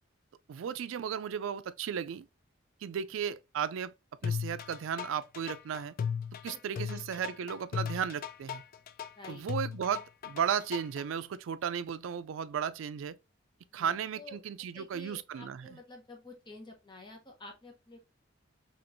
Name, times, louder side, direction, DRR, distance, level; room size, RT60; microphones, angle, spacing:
voice 1, 0.5-2.3 2.8-3.9 4.2-5.9 6.4-8.6 9.3-13.2 13.7-15.8, right 8 dB, 75° right, 0.3 m, -35 dB
sound 1, 4.2-11.0, left 7 dB, 45° left, 0.3 m, -37 dB
voice 2, 6.5-7.0 9.2-9.4 13.7-14.4 14.7-18.0, left 2 dB, 25° left, 0.9 m, -50 dB
4.3 x 3.0 x 2.5 m
head